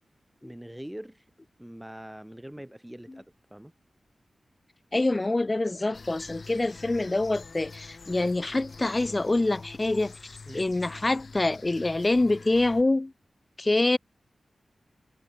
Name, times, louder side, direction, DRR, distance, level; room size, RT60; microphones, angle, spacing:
voice 1, 0.4-1.2 1.6-3.7 5.9-6.0 10.5-10.6, right 1 dB, 5° right, 2.3 m, -43 dB
voice 2, 4.9-10.1 10.5-13.1 13.6-14.0, left 2 dB, 25° left, 0.3 m, -25 dB
sound 1, 5.9-12.8, left 4 dB, 55° left, 5.7 m, -46 dB
wide cardioid pair, 105°, 0 cm